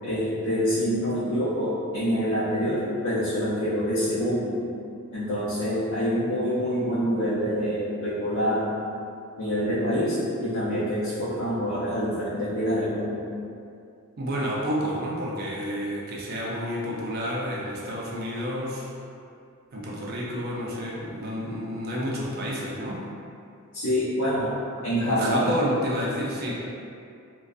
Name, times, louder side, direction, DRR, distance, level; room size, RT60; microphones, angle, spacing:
voice 1, 0.0-4.6 5.1-8.7 9.4-13.2 23.7-24.6 24.8-25.5 26.5-26.6, equal, 70° left, -10 dB, 0.5 m, -26 dB
voice 2, 14.2-18.9 19.7-23.1 25.0-26.5, equal, 45° right, -4 dB, 0.4 m, -30 dB
2.5 x 2.2 x 2.3 m, 2.4 s
head